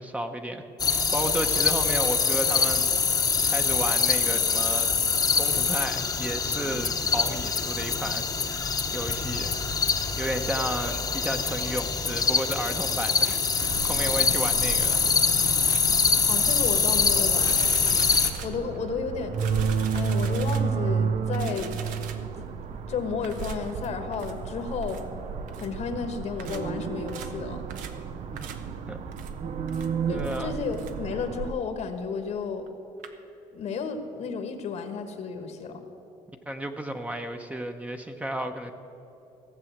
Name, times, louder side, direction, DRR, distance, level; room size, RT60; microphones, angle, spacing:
voice 1, 0.0-2.9 3.5-4.9 5.4-9.6 9.8-15.1 28.3-28.5 28.9-29.0 30.1-30.6 36.5-38.7, right 1 dB, 10° right, 5 dB, 0.9 m, -33 dB
sound 1, 0.8-18.3, left 5 dB, 30° left, 1.0 m, -24 dB
sound 2, 13.6-31.5, right 6 dB, 60° right, 0.7 m, -32 dB
sound 3, 15.5-16.0 17.3-18.7 19.3-20.8 21.3-22.3 23.2-24.4 24.8-25.0 25.5-25.7 26.4-26.7 27.1-27.4 27.7-28.1 28.4-28.7 29.1-29.3 29.7-29.9 30.2-30.4 30.7-30.9 32.7-32.8 33.0-33.1, right 7 dB, 80° right, 1.0 m, -43 dB
voice 2, 16.3-17.6 18.4-19.3 19.9-21.8 22.3-22.5 22.9-25.0 25.6-27.6 30.1-32.7 33.5-35.8, left 5 dB, 55° left, 7 dB, 1.4 m, -32 dB
15.5 x 7.7 x 7.3 m, 3.0 s
cardioid pair, 105°, 13 cm